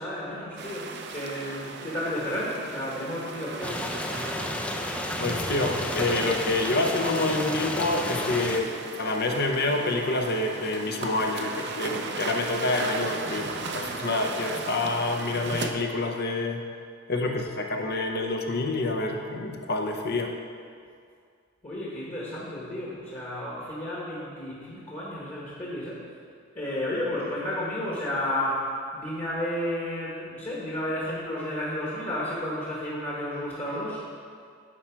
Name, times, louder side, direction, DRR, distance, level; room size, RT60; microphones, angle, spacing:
voice 1, 0.0-4.0 21.6-26.0 26.5-34.0, left 1 dB, 30° left, -7 dB, 1.4 m, -32 dB
sound 1, 0.6-15.7, right 3 dB, 55° right, 0.6 m, -37 dB
sound 2, 3.6-8.6, left 1 dB, 5° left, 0.4 m, -31 dB
voice 2, 5.2-16.6 17.1-20.3, left 2 dB, 50° left, 3 dB, 0.7 m, -27 dB
9.8 x 4.7 x 4.5 m, 2.2 s
head